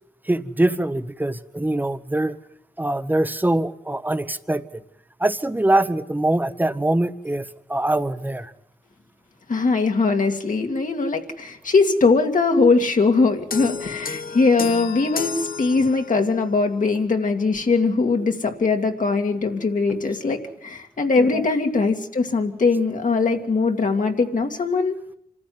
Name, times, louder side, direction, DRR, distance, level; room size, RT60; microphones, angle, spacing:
voice 1, 0.3-2.4 2.8-4.8 5.2-7.4 7.7-8.5 21.2-21.5, right 1 dB, 10° right, 12 dB, 1.0 m, -23 dB
voice 2, 9.5-25.0, left 4 dB, 60° left, 3 dB, 2.3 m, -21 dB
sound 1, 13.5-16.4, left 6 dB, 75° left, 1.0 m, -32 dB
27.0 x 15.0 x 9.5 m, 0.74 s
wide cardioid pair, 125°, 15 cm